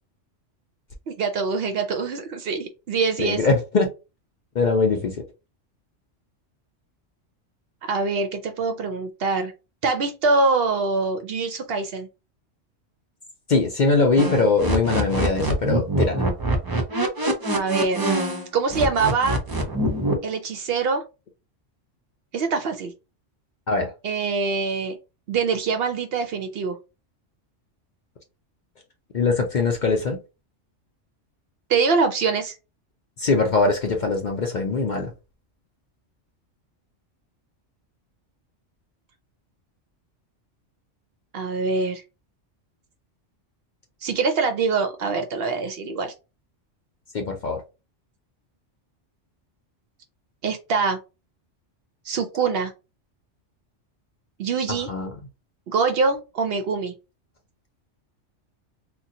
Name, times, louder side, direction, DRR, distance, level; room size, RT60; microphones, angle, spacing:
voice 1, 1.1-3.4 7.8-9.5 9.8-12.1 17.5-18.1 18.5-19.4 20.2-21.0 22.3-22.9 24.0-25.0 25.3-26.8 31.7-32.5 41.3-42.0 44.0-46.1 50.4-51.0 52.1-52.7 54.4-54.9 55.7-56.9, right 4 dB, 65° right, 0.7 m, -24 dB
voice 2, 3.2-3.9 4.5-5.2 13.5-16.3 23.7-23.9 29.1-30.2 33.2-35.1 47.1-47.6 54.7-55.1, left 3 dB, 55° left, 0.5 m, -22 dB
sound 1, 14.2-18.4 18.7-20.1, right 1 dB, 30° right, 0.4 m, -24 dB
4.0 x 2.2 x 2.6 m
omnidirectional pair, 1.3 m